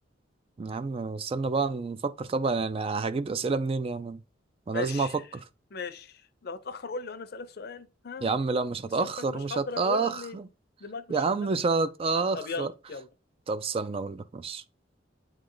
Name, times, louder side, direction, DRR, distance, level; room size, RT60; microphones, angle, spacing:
voice 1, 0.6-4.2 4.7-5.1 8.2-10.1 11.1-12.7 13.5-14.6, right 4 dB, 30° right, 0.3 m, -28 dB
voice 2, 4.7-5.4 5.7-8.3 9.0-10.4 10.8-11.6 12.3-13.1, left 4 dB, 55° left, 0.6 m, -38 dB
8.5 x 3.2 x 3.8 m
head